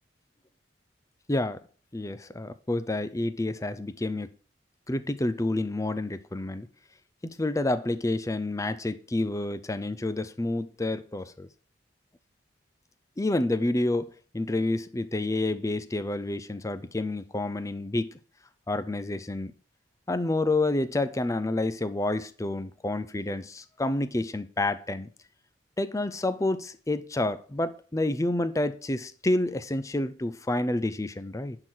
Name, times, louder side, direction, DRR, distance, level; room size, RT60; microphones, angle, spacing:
voice 1, 1.3-1.6 1.9-4.3 4.9-6.7 7.2-11.5 13.2-18.2 18.7-19.5 20.1-25.1 25.8-31.6, left 2 dB, 15° left, 0.5 m, -29 dB
11.0 x 3.9 x 6.2 m
head